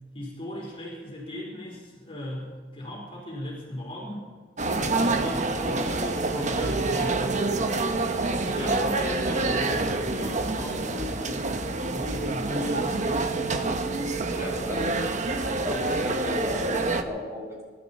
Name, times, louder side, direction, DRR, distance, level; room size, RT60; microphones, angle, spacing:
voice 1, 0.1-4.3 4.7-7.3 8.1-11.5 11.9-13.2, left 1 dB, 30° left, -4 dB, 4.3 m, -37 dB
sound 1, 4.6-17.0, right 3 dB, 45° right, 1.0 m, -27 dB
voice 2, 14.3-15.1 15.6-17.6, left 1 dB, 15° right, -3 dB, 5.7 m, -34 dB
25.0 x 12.5 x 4.3 m, 1.4 s
head